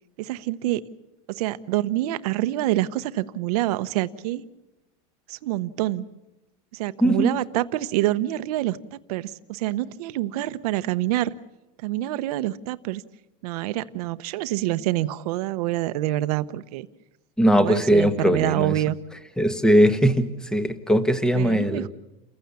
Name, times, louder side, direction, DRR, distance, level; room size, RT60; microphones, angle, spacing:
voice 1, 0.2-0.8 1.3-4.5 5.3-6.0 6.7-8.8 9.1-11.3 11.8-13.0 13.4-16.9 17.6-19.0 21.3-21.9, right 15 dB, 80° right, 14 dB, 0.9 m, -26 dB
voice 2, 17.4-18.7 19.4-21.9, equal, 5° left, 11 dB, 1.3 m, -20 dB
29.0 x 15.5 x 7.0 m, 1.0 s
supercardioid pair, 150°, 20 cm